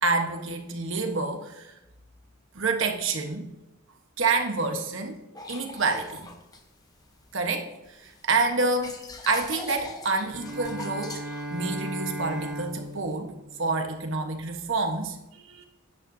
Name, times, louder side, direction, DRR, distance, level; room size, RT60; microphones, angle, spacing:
voice 1, 0.0-1.7 2.5-3.5 4.2-5.2 5.5-6.3 7.3-9.0 9.3-11.2 11.5-13.3 13.6-15.6, right 3 dB, 55° right, 4 dB, 1.2 m, -28 dB
sound 1, 5.3-7.4 7.8-13.2, left 3 dB, 15° left, 0.8 m, -43 dB
Bowed string instrument, 10.2-14.3, equal, 5° right, 2.0 m, -37 dB
11.5 x 9.8 x 2.7 m, 0.94 s
head